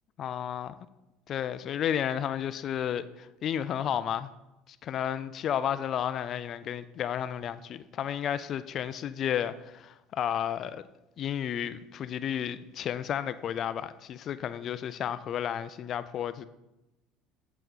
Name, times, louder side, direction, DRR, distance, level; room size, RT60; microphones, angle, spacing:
voice 1, 0.2-0.7 1.3-4.3 4.7-10.8 11.2-16.5, left 9 dB, 50° left, 0.4 m, -32 dB
7.6 x 6.8 x 4.0 m
supercardioid pair, 90°, 0 cm